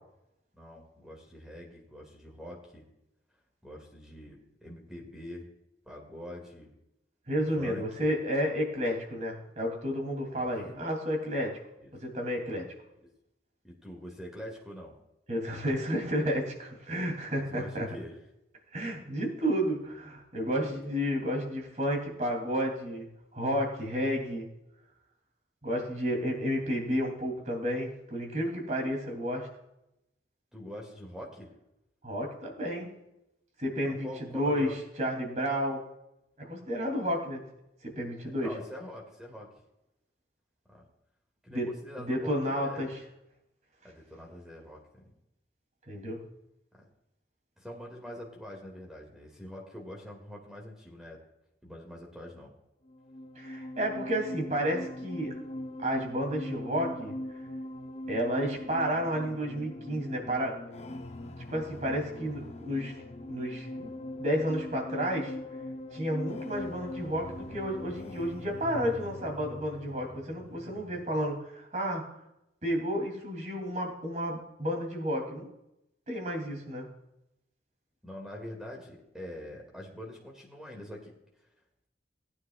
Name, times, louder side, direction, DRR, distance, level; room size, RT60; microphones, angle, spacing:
voice 1, 0.5-2.9 3.6-5.5 5.8-6.8 7.6-8.1 10.3-10.5 11.8-11.9 13.6-15.0 17.5-18.2 30.5-31.5 33.8-34.8 38.4-39.5 40.7-40.8 41.4-42.9 43.8-45.1 46.7-46.9 47.6-51.2 51.6-52.5 78.0-81.1, equal, 5° right, -1 dB, 2.1 m, -44 dB
voice 2, 7.3-11.5 12.0-12.7 15.3-17.9 18.7-23.1 23.3-24.5 25.6-29.5 32.0-32.9 33.6-34.7 35.0-35.8 36.4-37.4 37.8-38.5 41.5-41.7 42.0-43.0 45.9-46.2 53.3-55.3 55.8-57.1 58.1-60.6 61.5-63.0 63.3-63.9 64.2-65.4 65.9-72.0 72.6-75.5 76.1-76.9, equal, 40° right, 1 dB, 2.9 m, -31 dB
sound 1, 52.9-71.3, left 1 dB, 35° left, 0.7 m, -41 dB
19.0 x 9.6 x 2.4 m, 0.86 s
head